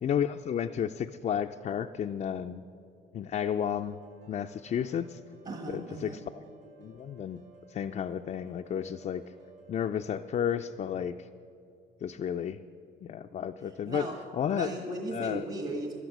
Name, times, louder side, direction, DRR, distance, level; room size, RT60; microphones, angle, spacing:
voice 1, 0.0-2.6 3.1-4.0 4.3-5.2 5.7-6.4 6.8-7.4 7.7-9.2 9.7-11.3 12.0-12.6 13.0-14.1 14.3-14.7 15.1-15.4, left 8 dB, 40° left, 6 dB, 0.4 m, -32 dB
sound 1, 3.8-9.8, right 3 dB, 60° right, 3.7 m, -57 dB
voice 2, 5.4-6.2 13.9-14.2 14.5-16.0, right 2 dB, 45° right, 2 dB, 1.5 m, -36 dB
11.5 x 10.0 x 6.0 m, 2.6 s
cardioid pair, 85°, 20 cm